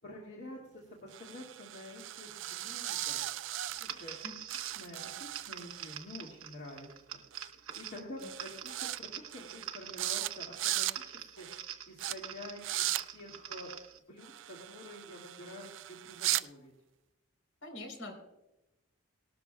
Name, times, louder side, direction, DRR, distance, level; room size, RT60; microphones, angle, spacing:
voice 1, 0.0-3.3 3.8-4.2 4.6-6.9 7.3-13.7 14.1-16.7, left 1 dB, 50° left, -3 dB, 2.1 m, -48 dB
sound 1, 1.1-4.2 4.5-6.0 7.3-7.5 7.7-8.0 8.2-9.0 9.3-9.7 10.0-10.3 10.5-11.0 11.4-11.6 12.0-12.1 12.6-13.0 14.2-16.4, right 15 dB, 55° right, 0.3 m, -37 dB
sound 2, 3.7-14.0, right 9 dB, 75° right, 1.0 m, -45 dB
voice 2, 17.6-18.2, left 2 dB, 70° left, 3 dB, 4.0 m, -44 dB
19.0 x 12.5 x 2.3 m, 0.92 s
head